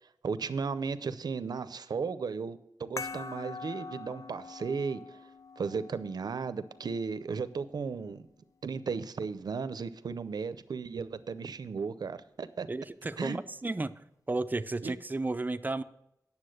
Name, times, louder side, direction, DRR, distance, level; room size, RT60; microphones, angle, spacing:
voice 1, 0.2-5.2 5.6-8.3 8.6-12.7 13.2-13.4 14.8-14.9, right 5 dB, 80° right, 14 dB, 0.6 m, -35 dB
sound 1, 3.0-8.0, left 4 dB, 50° left, 0.5 m, -44 dB
voice 2, 12.7-14.0 14.3-15.8, right 2 dB, 25° right, 12 dB, 0.5 m, -33 dB
9.7 x 7.1 x 6.4 m, 0.80 s
wide cardioid pair, 95°, 7 cm